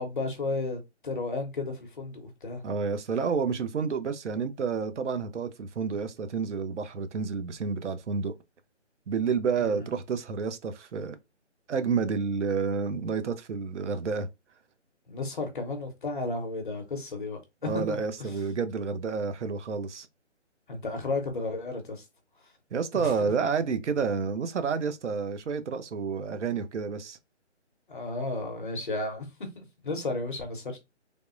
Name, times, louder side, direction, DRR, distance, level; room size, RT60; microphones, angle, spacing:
voice 1, 0.0-2.6 9.6-9.9 15.1-18.0 20.7-22.0 22.9-23.3 27.9-29.3 29.6-30.8, left 3 dB, 45° left, 0.8 m, -33 dB
voice 2, 2.6-8.3 9.1-11.2 11.7-14.3 17.6-20.1 22.7-27.2, right 5 dB, 75° right, 0.6 m, -29 dB
3.4 x 2.1 x 2.5 m
hypercardioid pair, 170°, 36 cm